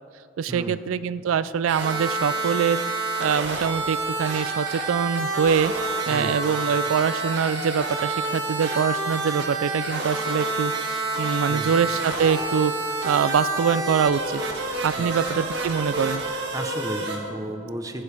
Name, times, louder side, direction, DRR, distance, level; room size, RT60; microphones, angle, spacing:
voice 1, 0.4-2.8 3.2-12.7 13.0-14.4 14.8-16.2, right 7 dB, 80° right, 15 dB, 0.3 m, -24 dB
sound 1, 1.7-17.2, right 2 dB, 55° right, 2.3 m, -28 dB
voice 2, 16.5-18.0, right 1 dB, 15° right, 5 dB, 0.9 m, -33 dB
18.0 x 14.5 x 3.4 m, 2.7 s
head